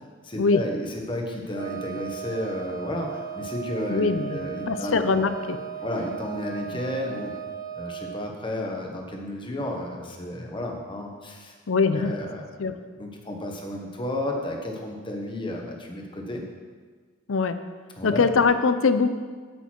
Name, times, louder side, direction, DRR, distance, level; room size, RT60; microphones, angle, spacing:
voice 1, 0.2-5.3 5.8-7.3 7.7-11.6 11.9-12.5 13.0-16.4 18.0-18.2, left 1 dB, 25° left, 1 dB, 1.3 m, -32 dB
Wind instrument woodwind instrument, 1.5-8.3, right 8 dB, 20° right, 0.6 m, -36 dB
voice 2, 3.9-4.4 4.7-5.6 11.7-12.1 12.6-12.7 17.3-17.6 18.0-19.1, left 4 dB, 85° left, 10 dB, 0.6 m, -22 dB
8.9 x 8.0 x 4.6 m, 1.5 s
head